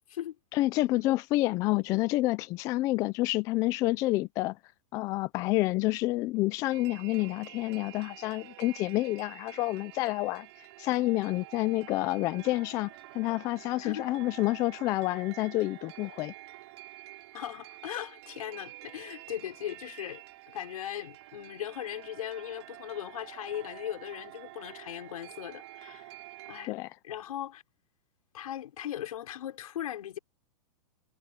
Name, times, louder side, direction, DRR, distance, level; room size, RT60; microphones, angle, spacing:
voice 1, 0.5-4.6 4.9-10.5 10.8-16.3 26.7-26.9, left 18 dB, 15° left, 0.3 m, -28 dB
sound 1, 6.7-26.7, right 19 dB, 50° right, 4.1 m, -48 dB
voice 2, 17.3-26.2 26.5-26.7 27.0-27.6 28.3-30.2, left 11 dB, 80° left, 5.6 m, -38 dB
supercardioid pair, 165°, 18 cm